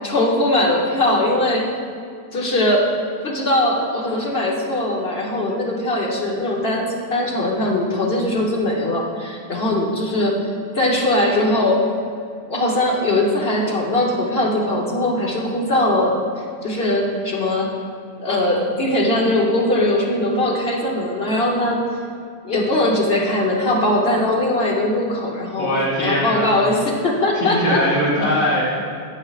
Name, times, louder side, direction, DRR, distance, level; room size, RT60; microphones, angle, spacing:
voice 1, 0.0-1.7 2.3-2.9 3.2-10.4 10.7-11.8 12.5-16.1 16.6-17.7 18.2-21.8 22.4-25.7 26.0-27.8, left 1 dB, 45° left, -2 dB, 0.9 m, -20 dB
voice 2, 25.6-26.5 27.3-28.6, left 1 dB, 75° left, -12 dB, 3.0 m, -20 dB
10.5 x 8.3 x 2.4 m, 2.3 s
omnidirectional pair, 1.9 m